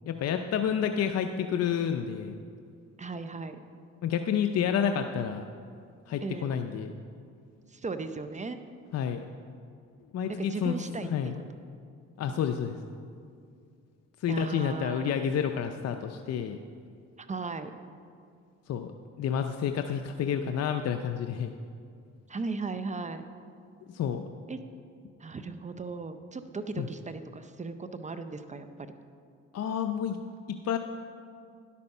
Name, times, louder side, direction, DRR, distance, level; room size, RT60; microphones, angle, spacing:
voice 1, 0.1-2.3 4.0-5.4 6.1-6.9 8.9-9.2 10.1-10.7 11.1-11.4 12.2-12.8 14.2-16.6 18.7-18.9 19.2-21.5 23.9-24.3 26.8-26.9 29.5-30.2 30.5-30.8, left 8 dB, 55° left, 6 dB, 0.6 m, -29 dB
voice 2, 3.0-3.6 6.2-6.5 7.7-8.6 10.4-11.1 12.3-12.8 14.3-15.2 17.2-17.7 22.3-23.3 24.5-24.6 25.2-28.9, right 4 dB, 25° right, 10 dB, 0.6 m, -37 dB
10.5 x 8.5 x 5.5 m, 2.3 s
cardioid pair, 90°, 30 cm